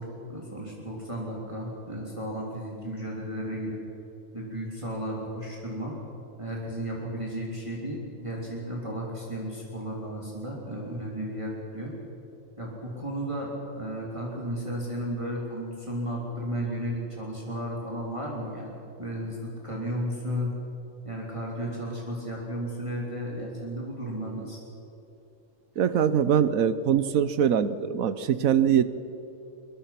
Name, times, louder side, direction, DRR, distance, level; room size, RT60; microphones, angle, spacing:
voice 1, 0.0-3.8 4.3-6.0 6.4-11.9 12.6-20.5 21.0-24.6, equal, 20° right, -3 dB, 3.4 m, -34 dB
voice 2, 25.8-28.8, right 8 dB, 75° right, 14 dB, 1.2 m, -23 dB
23.0 x 21.5 x 5.9 m, 2.9 s
omnidirectional pair, 1.5 m